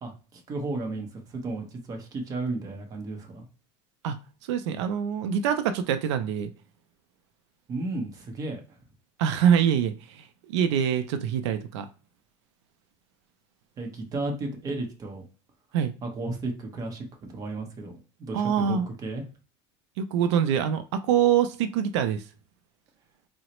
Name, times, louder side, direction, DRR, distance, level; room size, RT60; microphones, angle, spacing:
voice 1, 0.0-3.5 7.7-8.6 13.8-15.2 16.0-17.9 18.2-19.2, right 2 dB, 25° right, 2 dB, 0.8 m, -34 dB
voice 2, 4.5-6.5 9.2-10.3 10.5-11.9 15.7-15.9 18.3-18.9 20.0-22.2, right 8 dB, 90° right, 9 dB, 0.4 m, -24 dB
3.9 x 2.0 x 2.9 m, 0.36 s
supercardioid pair, 150°, 14 cm